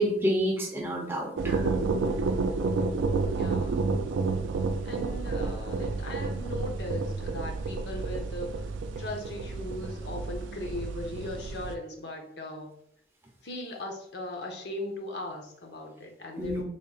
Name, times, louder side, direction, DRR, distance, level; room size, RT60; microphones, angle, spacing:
voice 1, 0.0-1.7 16.4-16.6, right 1 dB, 10° right, 1 dB, 0.4 m, -28 dB
sound 1, 1.4-11.8, right 3 dB, 80° right, 0.3 m, -30 dB
voice 2, 3.2-4.0 4.8-12.7 13.4-16.6, left 1 dB, 60° left, 2 dB, 0.7 m, -38 dB
3.5 x 2.1 x 3.9 m, 0.69 s
head